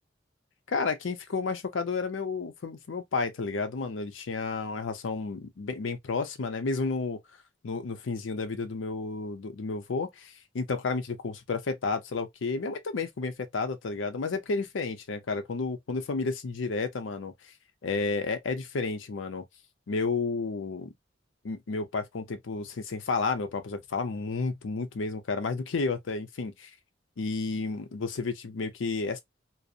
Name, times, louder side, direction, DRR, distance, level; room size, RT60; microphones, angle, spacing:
voice 1, 0.7-7.2 7.6-17.3 17.8-19.4 19.9-20.9 21.4-26.7 27.2-29.2, left 4 dB, 85° left, 0.5 m, -31 dB
2.6 x 2.0 x 2.4 m
head